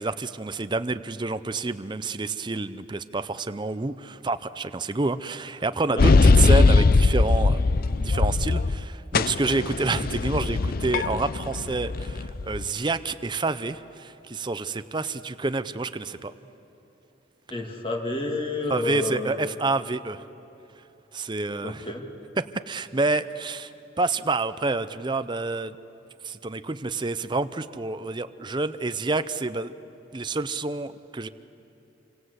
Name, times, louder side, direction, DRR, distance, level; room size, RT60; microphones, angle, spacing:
voice 1, 0.0-7.6 8.0-16.3 18.7-20.3 21.1-21.9 22.4-23.7 24.0-25.7 26.2-29.7 30.1-31.3, right 3 dB, 25° right, 12 dB, 0.6 m, -28 dB
sound 1, 6.0-8.8 9.1-12.6, left 3 dB, 50° left, 0.5 m, -20 dB
voice 2, 17.5-19.4 21.6-22.0, left 2 dB, 25° left, 1 dB, 2.3 m, -30 dB
27.0 x 25.5 x 8.1 m, 3.0 s
head